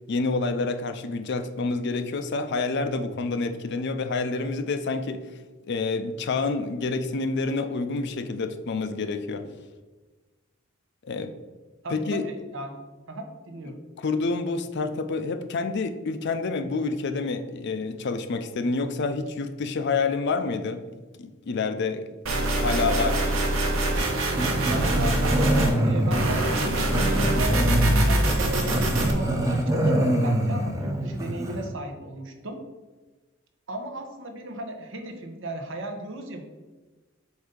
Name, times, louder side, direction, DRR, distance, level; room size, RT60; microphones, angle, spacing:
voice 1, 0.1-5.2 5.7-9.6 11.0-11.3 11.9-12.2 14.0-22.1 22.5-23.1, left 3 dB, 60° left, 9 dB, 0.5 m, -28 dB
voice 2, 11.8-12.8 13.1-13.8 22.8-23.2 24.7-32.6 33.7-36.4, right 1 dB, 65° right, 4 dB, 0.9 m, -35 dB
sound 1, 22.3-25.7 26.1-29.1, right 1 dB, 85° right, 1.1 m, -24 dB
Growling, 24.4-31.7, right 1 dB, 15° right, 0.8 m, -25 dB
7.9 x 2.7 x 5.1 m, 1.2 s
head